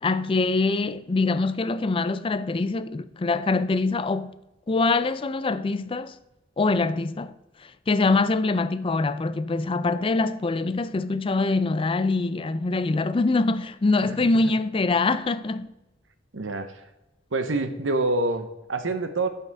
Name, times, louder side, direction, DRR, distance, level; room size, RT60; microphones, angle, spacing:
voice 1, 0.0-4.4 4.7-6.2 6.6-7.3 7.6-15.7, left 3 dB, 30° left, 0.4 m, -24 dB
voice 2, 16.3-16.9 17.3-19.3, right 2 dB, 85° right, 1.0 m, -27 dB
11.5 x 5.7 x 3.5 m
head